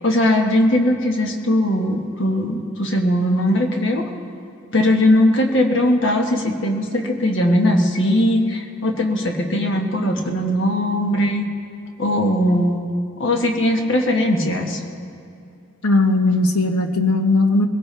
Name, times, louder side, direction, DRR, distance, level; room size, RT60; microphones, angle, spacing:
voice 1, 0.0-4.0 4.7-11.4 12.0-12.8 13.2-14.8, left 1 dB, 55° left, 2 dB, 1.5 m, -19 dB
voice 2, 15.8-17.7, left 2 dB, 85° left, 5 dB, 1.2 m, -17 dB
21.5 x 17.0 x 3.4 m, 2.6 s
head